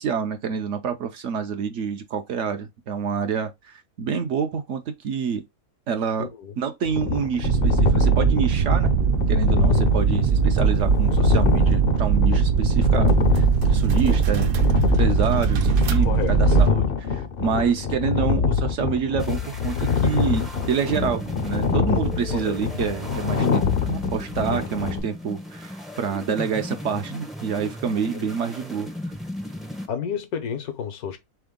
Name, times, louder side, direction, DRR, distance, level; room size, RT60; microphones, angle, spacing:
voice 1, 0.0-5.4 5.9-6.3 6.6-8.9 9.3-14.5 15.0-28.9, right 6 dB, 65° right, 0.8 m, -27 dB
voice 2, 6.2-6.5 9.5-10.0 16.0-16.6 22.3-22.5 28.1-28.3 29.9-31.2, left 8 dB, 80° left, 1.3 m, -31 dB
sound 1, 6.9-25.0, left 5 dB, 55° left, 0.6 m, -25 dB
sound 2, 7.4-16.7, right 6 dB, 85° right, 0.4 m, -20 dB
sound 3, 19.2-29.9, equal, ahead, 0.4 m, -36 dB
3.7 x 3.5 x 3.6 m
omnidirectional pair, 1.6 m